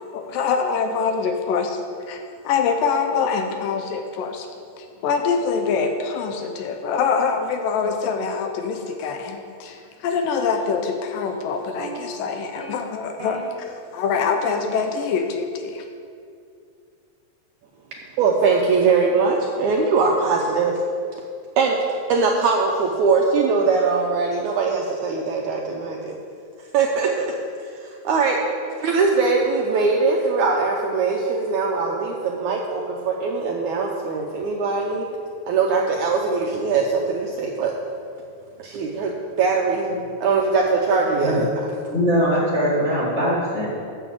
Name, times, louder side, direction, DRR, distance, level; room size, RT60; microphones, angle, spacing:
voice 1, 0.0-1.8 2.1-4.5 4.8-15.8, left 5 dB, 75° left, 5 dB, 2.2 m, -24 dB
sound 1, 8.0-9.5 10.2-12.7 13.2-13.4, right 3 dB, 55° right, 1.5 m, -42 dB
voice 2, 18.2-20.8 21.6-21.8 22.1-26.2 26.7-27.1 27.6-28.4 28.8-35.1 35.5-37.8 38.6-39.1 39.4-39.9 40.2-41.7, right 4 dB, 80° right, 0 dB, 1.8 m, -21 dB
voice 3, 41.9-43.7, equal, 45° left, -6 dB, 0.9 m, -21 dB
8.1 x 6.9 x 7.3 m, 2.4 s
omnidirectional pair, 4.2 m